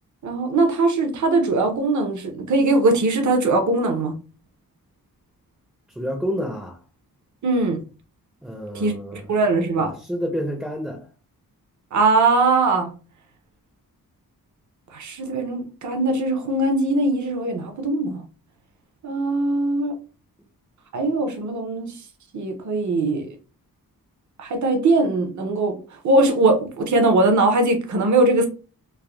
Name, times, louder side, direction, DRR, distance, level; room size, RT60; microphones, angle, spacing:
voice 1, 0.2-4.1 7.4-7.8 8.7-9.9 11.9-12.9 14.9-18.2 19.0-19.9 20.9-21.9 22.3-23.3 24.4-25.8 26.0-28.5, right 2 dB, 55° right, 0.6 m, -21 dB
voice 2, 6.0-6.8 8.4-9.3 9.8-11.0, equal, 5° right, 0.5 m, -29 dB
3.3 x 2.0 x 2.2 m
wide cardioid pair, 95°, 36 cm